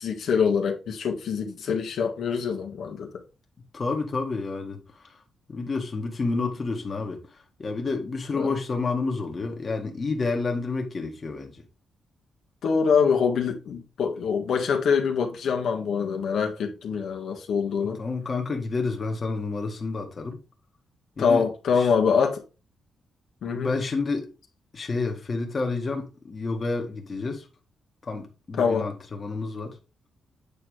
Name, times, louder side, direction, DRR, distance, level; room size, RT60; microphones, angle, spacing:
voice 1, 0.0-3.1 6.3-6.5 8.3-8.5 12.6-18.0 21.2-22.4 23.4-23.7 28.6-28.9, left 6 dB, 70° left, 1.7 m, -24 dB
voice 2, 3.7-4.8 5.5-7.2 7.6-11.5 18.0-20.4 21.2-21.4 21.8-21.9 23.5-24.3 24.7-27.4 28.0-29.7, left 3 dB, 35° left, 1.8 m, -29 dB
8.5 x 4.5 x 4.9 m
cardioid pair, 120°, 0 cm